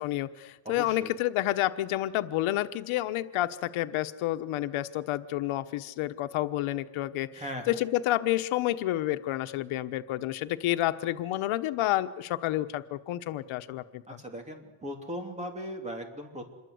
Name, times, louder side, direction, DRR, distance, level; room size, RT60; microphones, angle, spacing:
voice 1, 0.0-7.4 7.7-14.2, left 15 dB, 90° left, 10 dB, 1.2 m, -29 dB
voice 2, 0.6-1.1 7.3-7.8 14.1-16.5, equal, 15° right, 4 dB, 3.1 m, -38 dB
27.0 x 22.0 x 8.0 m, 1.2 s
cardioid pair, 180°, 47 cm